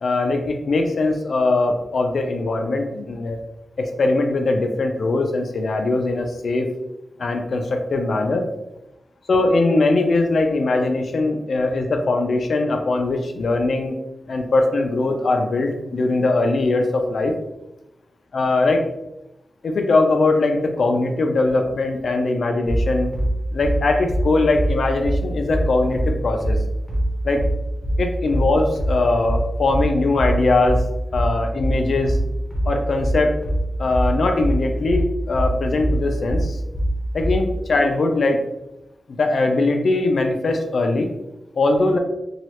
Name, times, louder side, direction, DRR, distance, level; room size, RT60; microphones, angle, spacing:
voice 1, 0.0-3.4 3.8-6.7 7.2-8.5 9.3-13.9 14.3-17.3 18.3-18.8 19.6-23.1 23.5-26.6 27.2-27.4 28.0-30.8 31.1-32.2 32.7-33.3 33.8-36.6 37.1-38.4 39.1-41.1 41.6-42.0, left 2 dB, 60° left, 4 dB, 0.4 m, -21 dB
sound 1, 22.7-37.4, right 1 dB, 5° left, 0.8 m, -22 dB
3.1 x 2.3 x 2.9 m, 0.95 s
wide cardioid pair, 155°, 0 cm